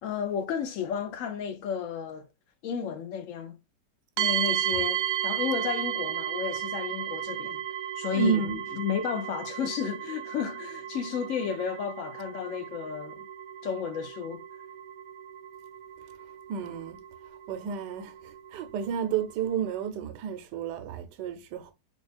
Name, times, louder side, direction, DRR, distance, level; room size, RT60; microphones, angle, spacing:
voice 1, 0.0-2.3 2.6-3.5 4.2-7.6 8.0-13.3 13.6-14.4, left 7 dB, 70° left, 0.8 m, -32 dB
sound 1, 4.2-19.9, right 11 dB, 70° right, 0.9 m, -34 dB
voice 2, 8.1-8.6 16.5-17.0 17.5-18.1 18.5-21.7, right 7 dB, 90° right, 1.2 m, -31 dB
4.1 x 2.4 x 3.2 m
omnidirectional pair, 1.8 m